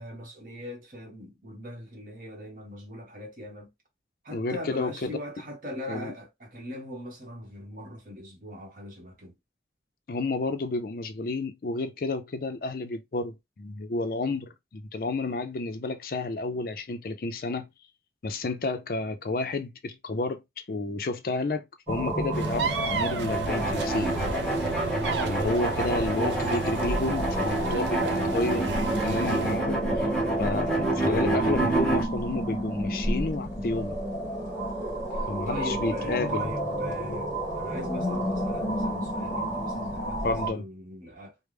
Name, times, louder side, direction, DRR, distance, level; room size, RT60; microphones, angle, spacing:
voice 1, 0.0-3.7 4.2-9.4 26.1-26.5 29.9-30.1 35.1-41.3, equal, 50° right, 1.2 m, -40 dB
voice 2, 4.3-5.1 5.9-6.1 10.1-17.7 18.2-20.4 20.7-24.2 25.2-28.7 29.0-29.8 30.4-34.0 35.3-36.5 40.2-40.6, left 2 dB, 50° left, 0.4 m, -31 dB
sound 1, 21.9-40.5, right 1 dB, 15° right, 1.7 m, -31 dB
sound 2, 22.3-29.6, right 4 dB, 90° right, 0.5 m, -33 dB
sound 3, 23.3-32.0, right 2 dB, 5° left, 0.7 m, -29 dB
3.2 x 2.1 x 3.3 m
head